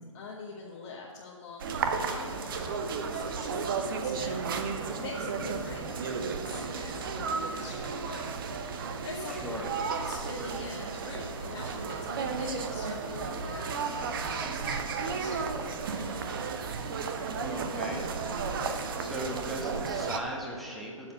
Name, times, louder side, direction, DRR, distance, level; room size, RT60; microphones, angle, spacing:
voice 1, 0.1-8.3 8.8-9.3 9.9-16.2, left 4 dB, 35° left, -4 dB, 1.2 m, -44 dB
sound 1, 1.6-20.2, right 5 dB, 40° right, 0.9 m, -33 dB
voice 2, 9.3-9.6 17.4-18.1 19.0-21.1, equal, ahead, -4 dB, 1.5 m, -38 dB
11.5 x 7.1 x 5.1 m, 2.2 s
figure-of-eight pair, 135°, 17 cm